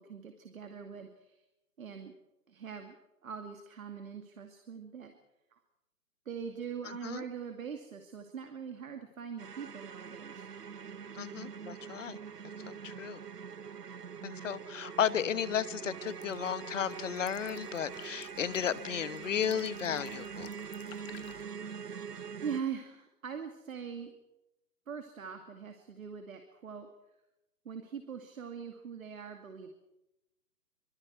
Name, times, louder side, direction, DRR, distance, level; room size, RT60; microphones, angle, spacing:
voice 1, 0.0-1.4 1.8-2.1 2.5-3.0 3.2-5.1 5.5-5.6 6.3-10.4 22.4-24.1 24.9-26.9 27.6-29.7, right 7 dB, 60° right, 6 dB, 2.4 m, -42 dB
voice 2, 6.8-7.2 11.1-12.2 12.6-13.2 14.2-20.5, left 8 dB, 50° left, 16 dB, 1.3 m, -34 dB
sound 1, 9.4-22.6, right 6 dB, 85° right, 1.1 m, -44 dB
sound 2, 15.1-15.4 15.7-21.4, left 10 dB, 10° left, 0.7 m, -54 dB
25.5 x 25.5 x 4.7 m, 0.92 s
figure-of-eight pair, 140°, 46 cm